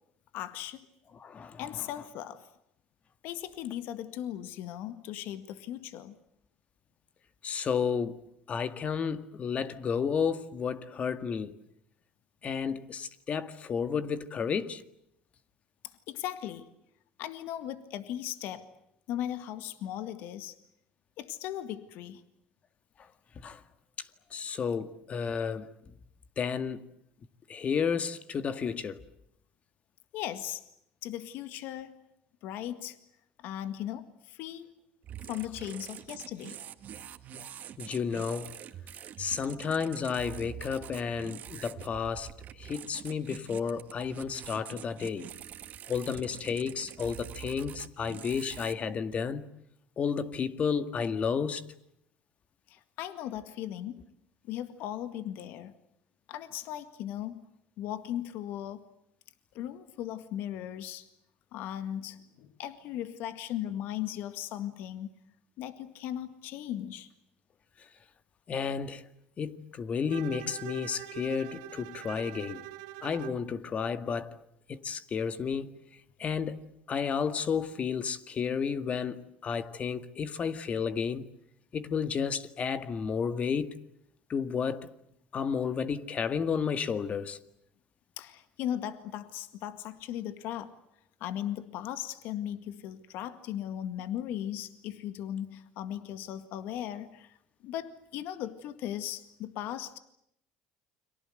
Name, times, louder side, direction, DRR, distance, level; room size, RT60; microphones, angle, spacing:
voice 1, 0.3-0.9 1.6-2.5 3.2-6.2 15.8-16.7 17.2-18.7 19.1-20.6 21.2-22.2 30.1-30.6 31.0-32.0 32.4-33.0 33.4-34.7 35.2-36.6 52.7-54.0 54.4-55.8 56.3-57.5 57.8-58.8 59.5-61.1 61.5-65.1 65.6-67.1 88.2-90.8 91.2-97.4 97.6-100.0, left 11 dB, 70° left, 1.9 m, -37 dB
voice 2, 1.2-1.6 7.4-8.2 8.5-11.5 12.4-14.8 23.4-23.6 24.0-25.7 26.4-26.9 27.5-29.0 37.8-38.6 39.2-42.3 42.6-45.3 45.9-49.4 50.0-51.7 68.5-69.1 69.4-72.6 73.0-74.4 74.7-75.7 76.2-81.3 81.7-83.8 84.3-84.9 85.3-87.4, left 6 dB, 40° left, 2.1 m, -32 dB
sound 1, 35.0-48.7, right 10 dB, 50° right, 2.1 m, -45 dB
Bowed string instrument, 70.1-73.5, right 15 dB, 90° right, 1.9 m, -43 dB
30.0 x 24.0 x 8.0 m
supercardioid pair, 100°, 4 cm